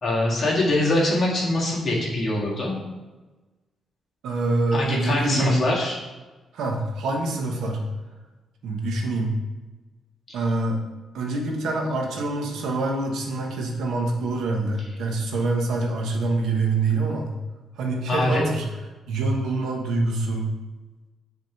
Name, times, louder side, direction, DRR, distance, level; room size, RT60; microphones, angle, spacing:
voice 1, 0.0-2.7 4.7-6.0 10.3-10.4 18.1-18.4, left 1 dB, 40° left, -4 dB, 1.9 m, -23 dB
voice 2, 4.2-5.7 6.5-7.8 8.6-9.4 10.3-10.8 11.1-17.3 17.8-18.6 19.1-20.5, right 2 dB, 85° right, 1 dB, 1.1 m, -25 dB
5.9 x 3.6 x 5.6 m, 1.2 s
cardioid pair, 120°, 0 cm